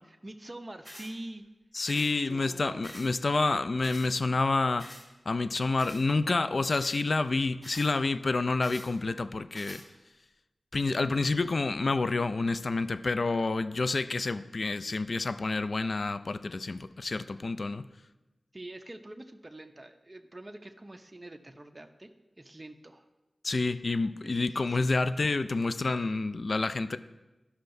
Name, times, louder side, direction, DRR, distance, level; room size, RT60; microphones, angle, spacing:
voice 1, 0.2-1.4 2.0-2.9 18.5-23.1 24.2-25.0, right 1 dB, 30° right, 0.6 m, -45 dB
sound 1, 0.8-1.1 1.9-2.1 2.8-3.1 3.8-4.1 4.8-5.1 5.8-6.0 6.7-7.0 7.6-7.9 8.6-8.9 9.5-9.8, equal, 25° left, 2.3 m, -47 dB
voice 2, 1.7-4.9 5.3-9.8 10.7-17.8 23.4-27.0, left 3 dB, 65° left, 0.3 m, -28 dB
13.5 x 5.6 x 2.6 m
cardioid pair, 50°, 0 cm